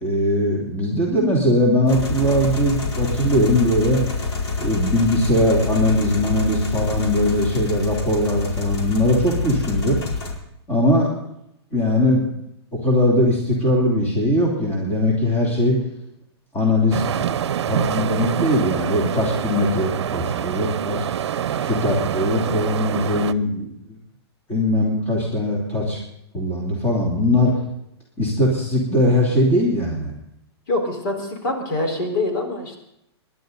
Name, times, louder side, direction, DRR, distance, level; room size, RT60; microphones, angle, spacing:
voice 1, 0.0-4.0 4.6-10.0 10.7-11.1 11.7-12.2 12.8-15.8 16.5-21.0 21.6-23.7 24.5-26.0 26.3-27.5 28.2-30.1, left 1 dB, 15° left, -3 dB, 3.1 m, -20 dB
sound 1, 1.9-10.3, left 4 dB, 70° left, 4.5 m, -27 dB
Mar escollera frente ola +lowshelf, 16.9-23.3, right 10 dB, 80° right, 0.7 m, -26 dB
voice 2, 30.7-32.8, left 2 dB, 50° left, 3 dB, 4.3 m, -25 dB
27.5 x 11.5 x 4.0 m, 0.79 s
hypercardioid pair, 165°, 14 cm